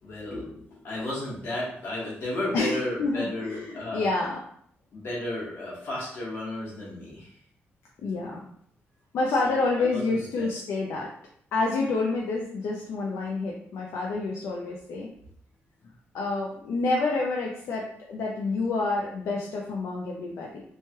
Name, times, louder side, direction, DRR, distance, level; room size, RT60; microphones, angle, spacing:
voice 1, 0.0-4.1 4.9-7.3 9.3-10.6, left 1 dB, 55° left, -5 dB, 1.2 m, -34 dB
voice 2, 2.5-4.4 8.0-8.5 9.1-11.1 11.5-15.1 16.1-20.6, left 3 dB, 75° left, -1 dB, 0.4 m, -28 dB
3.1 x 2.2 x 2.9 m, 0.66 s
wide cardioid pair, 150°, 5 cm